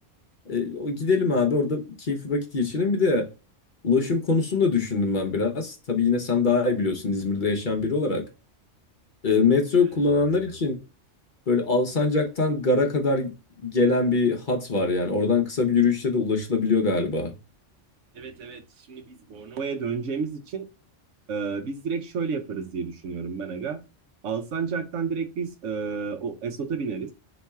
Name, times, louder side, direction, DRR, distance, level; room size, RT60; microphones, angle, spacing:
voice 1, 0.5-3.3 3.8-8.2 9.2-10.8 11.5-13.3 13.6-17.3, left 4 dB, 45° left, 0.9 m, -23 dB
voice 2, 18.1-20.7 21.3-23.8 24.2-27.1, right 5 dB, 80° right, 1.1 m, -31 dB
4.3 x 3.0 x 3.4 m
omnidirectional pair, 1.3 m